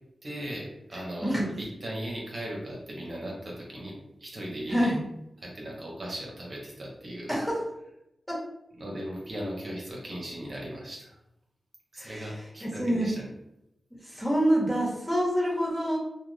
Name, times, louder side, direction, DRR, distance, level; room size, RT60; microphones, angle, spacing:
voice 1, 0.2-1.3 1.6-4.9 5.4-7.4 8.8-11.2 11.9-13.2, right 1 dB, 55° right, -2 dB, 0.8 m, -37 dB
voice 2, 0.9-1.5 4.7-5.0 7.3-7.6 8.3-8.4 12.0-13.1 14.0-16.0, equal, 5° left, -5 dB, 1.2 m, -27 dB
2.4 x 2.3 x 3.2 m, 0.85 s
cardioid pair, 45°, 0 cm